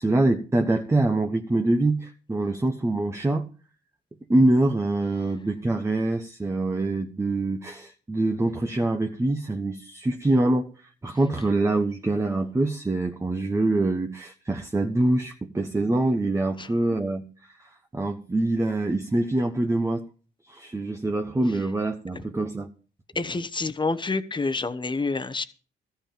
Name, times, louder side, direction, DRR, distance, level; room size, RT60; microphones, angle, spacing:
voice 1, 0.0-3.5 4.3-10.7 11.0-17.5 17.9-20.1 20.5-22.7, right 2 dB, 15° right, 1.0 m, -24 dB
voice 2, 23.1-25.4, left 3 dB, 25° left, 1.2 m, -28 dB
13.5 x 5.7 x 8.9 m
cardioid pair, 90°, 20 cm